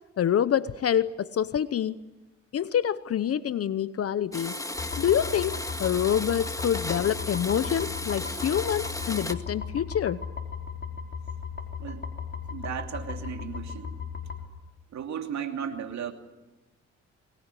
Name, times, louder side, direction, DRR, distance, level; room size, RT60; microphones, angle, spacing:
voice 1, 0.2-2.0 2.5-4.6 5.0-10.2, left 9 dB, 50° left, 15 dB, 0.9 m, -26 dB
Domestic sounds home sounds, 4.3-9.3, left 1 dB, 10° left, 2.0 m, -35 dB
sound 1, 4.8-14.4, left 6 dB, 35° left, 4.2 m, -37 dB
voice 2, 12.5-13.9 14.9-16.1, right 8 dB, 65° right, 5 dB, 2.8 m, -35 dB
23.5 x 20.5 x 9.9 m, 1.1 s
cardioid pair, 90°, 30 cm